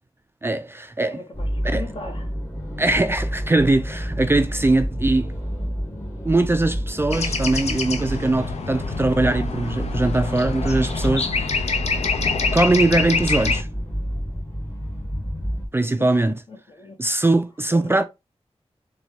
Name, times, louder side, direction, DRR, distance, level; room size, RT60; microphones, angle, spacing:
voice 1, 0.4-1.2 1.6-1.8 2.8-5.3 6.2-11.7 12.5-13.7 15.7-16.3 17.0-18.0, right 2 dB, 20° right, 0.3 m, -21 dB
voice 2, 1.1-2.3 16.0-17.0 17.7-18.0, left 2 dB, 55° left, 1.0 m, -38 dB
sound 1, 1.3-15.7, equal, 25° left, 1.2 m, -29 dB
sound 2, 7.1-13.6, left 4 dB, 80° left, 0.6 m, -26 dB
4.2 x 2.2 x 2.8 m
wide cardioid pair, 95°, 11 cm